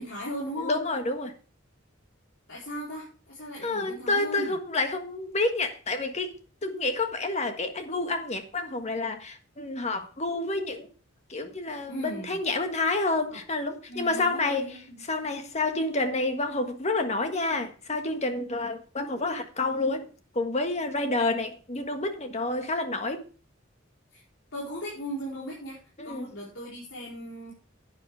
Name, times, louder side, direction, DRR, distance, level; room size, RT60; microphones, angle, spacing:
voice 1, 0.0-0.8 2.5-4.5 11.9-12.4 13.3-13.4 13.9-15.0 24.1-24.2 24.5-25.8 26.0-27.5, equal, 70° left, 4.2 m, -37 dB
voice 2, 0.6-1.3 3.6-10.9 11.3-14.7 15.1-20.1 20.3-23.2 26.0-26.3, left 2 dB, 35° left, 1.6 m, -29 dB
11.5 x 9.2 x 3.4 m
head